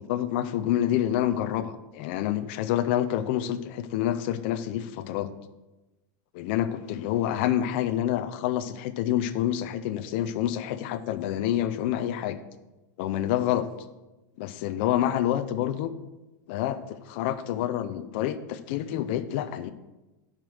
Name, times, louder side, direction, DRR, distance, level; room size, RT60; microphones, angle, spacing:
voice 1, 0.0-5.3 6.3-12.4 13.0-13.7 14.4-15.9 16.5-19.7, left 11 dB, 35° left, 10 dB, 0.4 m, -28 dB
7.4 x 5.1 x 6.2 m, 1.0 s
supercardioid pair, 180°, 10 cm